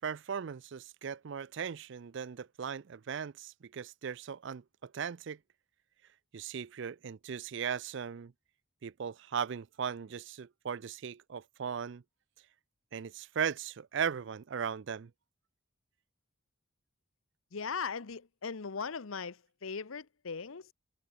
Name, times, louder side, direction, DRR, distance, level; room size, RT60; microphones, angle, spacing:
voice 1, 0.0-5.4 6.3-8.3 8.8-12.0 12.9-15.1, right 7 dB, 60° right, 0.4 m, -38 dB
voice 2, 17.5-20.7, left 5 dB, 80° left, 0.9 m, -39 dB
head